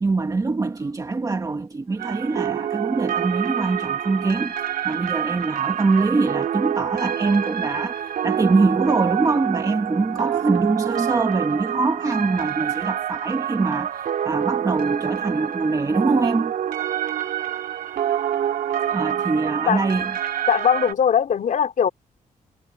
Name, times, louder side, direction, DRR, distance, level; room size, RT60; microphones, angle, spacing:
voice 1, 0.0-4.5 4.8-16.5 18.9-20.1, right 3 dB, 25° right, 1.8 m, -23 dB
sound 1, 2.0-20.9, right 10 dB, 85° right, 2.9 m, -27 dB
voice 2, 19.7-20.0 20.5-21.9, left 8 dB, 65° left, 3.5 m, -20 dB
cardioid pair, 125°, 14 cm